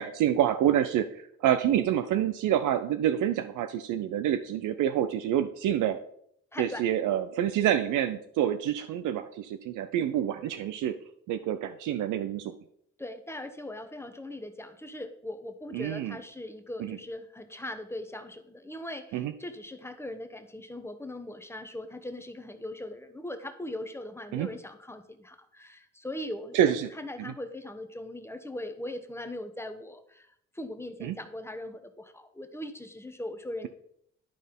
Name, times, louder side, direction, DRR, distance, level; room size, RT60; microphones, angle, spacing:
voice 1, 0.0-6.0 6.6-10.9 11.3-12.5 15.7-16.2 16.8-17.0 19.1-19.3 24.3-24.5 26.5-26.9 27.2-27.3 31.0-31.1, right 10 dB, 80° right, 10 dB, 0.6 m, -27 dB
voice 2, 6.5-6.8 13.0-30.3 30.5-33.7, left 1 dB, 10° left, 8 dB, 1.0 m, -40 dB
11.5 x 4.2 x 5.2 m, 0.69 s
cardioid pair, 90°, 30 cm